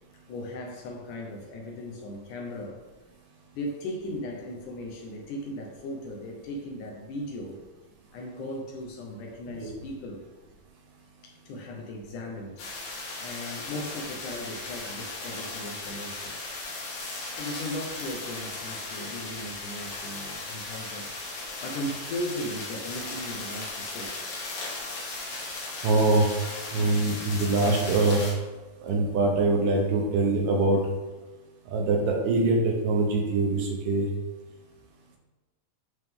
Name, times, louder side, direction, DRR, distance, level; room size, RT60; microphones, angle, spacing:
voice 1, 0.3-2.8 3.5-7.6 8.1-10.3 11.2-12.6 13.2-16.4 17.3-24.1, left 1 dB, 70° left, 0 dB, 2.2 m, -37 dB
sound 1, 12.6-28.3, left 3 dB, 85° left, 3.6 m, -37 dB
voice 2, 25.8-26.3 26.7-28.3 28.8-30.8 31.7-34.1, right 3 dB, 70° right, 1 dB, 2.5 m, -23 dB
11.0 x 3.7 x 3.7 m, 1.2 s
omnidirectional pair, 4.1 m